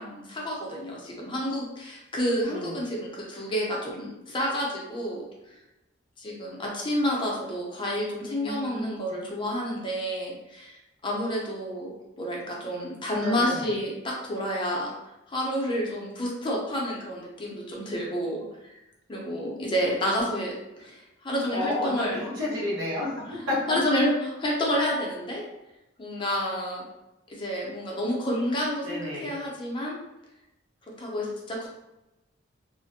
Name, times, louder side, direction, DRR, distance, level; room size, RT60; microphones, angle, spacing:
voice 1, 0.0-5.6 6.2-11.9 12.2-14.9 15.3-18.4 18.7-18.8 19.1-22.2 23.3-25.4 26.0-26.8 27.3-30.0 31.0-31.7, equal, 25° left, -3 dB, 0.6 m, -29 dB
voice 2, 8.1-9.1 13.2-13.7 21.5-23.8 28.8-29.3, left 2 dB, 80° right, -7 dB, 0.9 m, -31 dB
2.4 x 2.1 x 2.6 m, 0.95 s
head